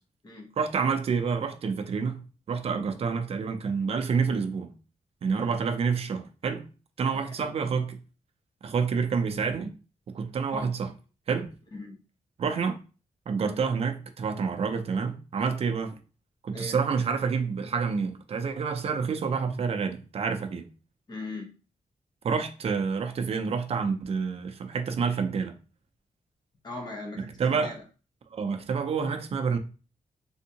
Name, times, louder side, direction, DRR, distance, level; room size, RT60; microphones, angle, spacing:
voice 1, 0.6-4.7 5.2-6.7 7.0-8.0 8.6-9.7 10.1-10.9 11.3-11.5 12.4-12.8 13.3-16.0 16.4-20.7 22.2-25.6 27.4-27.7 28.3-29.6, right 5 dB, 45° right, 0.4 m, -28 dB
voice 2, 7.1-7.5 10.5-10.7 11.7-12.0 16.5-16.8 21.1-21.5 26.6-27.8, left 2 dB, 30° left, 0.8 m, -39 dB
3.5 x 2.6 x 2.8 m
wide cardioid pair, 175°, 14 cm